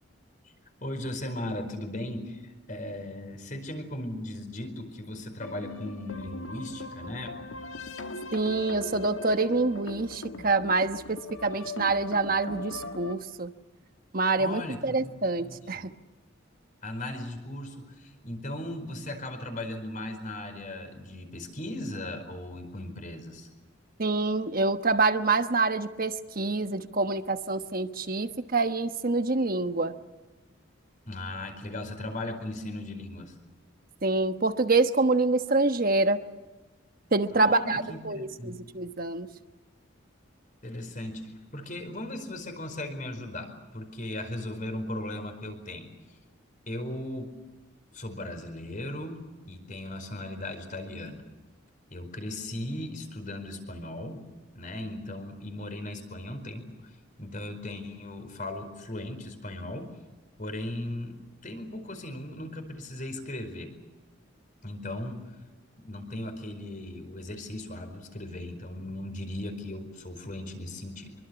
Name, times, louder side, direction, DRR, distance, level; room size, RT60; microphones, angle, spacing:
voice 1, 0.8-7.5 14.4-15.8 16.8-23.5 31.1-33.3 37.3-38.6 40.6-45.9 46.7-47.3 47.9-49.2 49.5-51.3 51.9-54.2 54.5-56.9 57.2-59.9 60.4-63.7 64.6-65.2 65.8-71.1, left 1 dB, 40° left, 7 dB, 4.8 m, -37 dB
sound 1, 5.4-13.2, left 2 dB, 80° left, 1.7 m, -40 dB
voice 2, 8.3-13.5 14.1-15.9 24.0-29.9 34.0-36.2 37.1-39.3, right 3 dB, 45° right, 8 dB, 1.2 m, -26 dB
26.0 x 23.5 x 7.1 m, 1.2 s
head